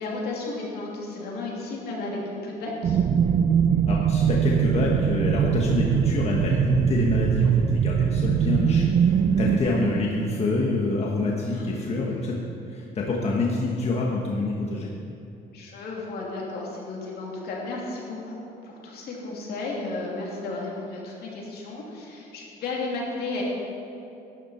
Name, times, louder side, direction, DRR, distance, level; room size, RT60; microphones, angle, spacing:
voice 1, 0.0-3.0 11.5-11.7 15.5-23.4, left 3 dB, 70° left, -3 dB, 2.8 m, -33 dB
sound 1, 2.8-9.6, right 8 dB, 50° right, 0.6 m, -22 dB
voice 2, 3.9-12.4 12.7-14.9, left 2 dB, 40° left, -2 dB, 1.3 m, -26 dB
12.0 x 10.5 x 4.4 m, 2.8 s
cardioid pair, 110°, 17 cm